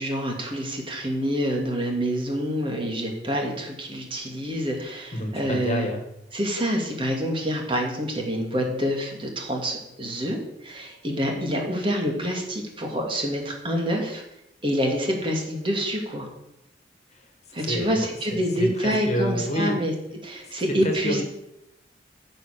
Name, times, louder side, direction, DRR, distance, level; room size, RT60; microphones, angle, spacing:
voice 1, 0.0-5.9 6.3-14.2 14.6-16.3 17.5-19.9 20.2-21.2, equal, 30° right, 1 dB, 2.5 m, -27 dB
voice 2, 5.1-6.0 17.1-19.8 20.4-21.2, left 1 dB, 40° left, 4 dB, 1.9 m, -29 dB
14.5 x 5.6 x 6.7 m, 0.84 s
head